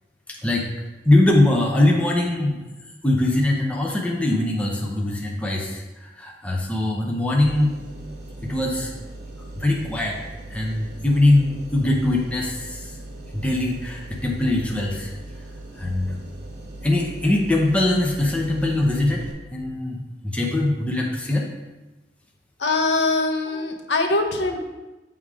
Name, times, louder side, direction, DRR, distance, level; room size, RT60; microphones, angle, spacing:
voice 1, 1.0-2.6 3.0-7.7 8.4-8.9 9.5-10.2 10.5-12.9 13.3-15.1 15.8-16.1 16.8-19.2 19.5-21.5 23.5-23.6, left 1 dB, 5° left, -2 dB, 0.7 m, -22 dB
sound 1, 7.4-19.3, right 1 dB, 60° right, 1.3 m, -39 dB
voice 2, 22.6-24.6, left 3 dB, 70° left, 4 dB, 0.8 m, -22 dB
7.1 x 3.7 x 4.8 m, 1.1 s
head